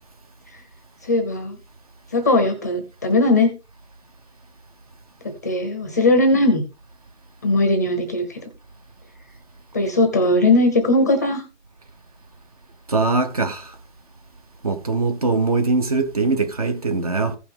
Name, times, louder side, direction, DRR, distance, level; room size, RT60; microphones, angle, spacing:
voice 1, 1.1-1.5 2.1-3.5 5.4-6.6 7.4-8.4 9.7-11.4, left 2 dB, 15° left, 0.8 m, -18 dB
voice 2, 12.9-13.8 14.6-17.4, right 3 dB, 30° right, 1.1 m, -21 dB
15.5 x 5.8 x 3.6 m
hypercardioid pair, 170°, 36 cm